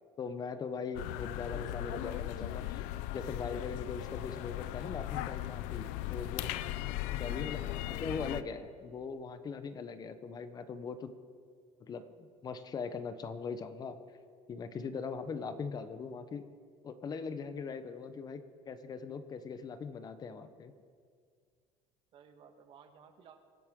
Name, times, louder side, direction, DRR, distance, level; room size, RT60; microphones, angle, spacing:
voice 1, 0.2-2.8 3.1-6.6 7.1-7.6 7.9-11.1 11.8-14.0 14.5-16.4 16.8-20.7, left 5 dB, 30° left, 11 dB, 0.9 m, -40 dB
sound 1, 0.9-8.4, left 14 dB, 80° left, 0.6 m, -38 dB
voice 2, 1.5-2.2 7.2-7.9 22.1-23.4, right 7 dB, 45° right, 7 dB, 1.5 m, -56 dB
25.0 x 11.0 x 3.7 m, 2.1 s
cardioid pair, 130°, 12 cm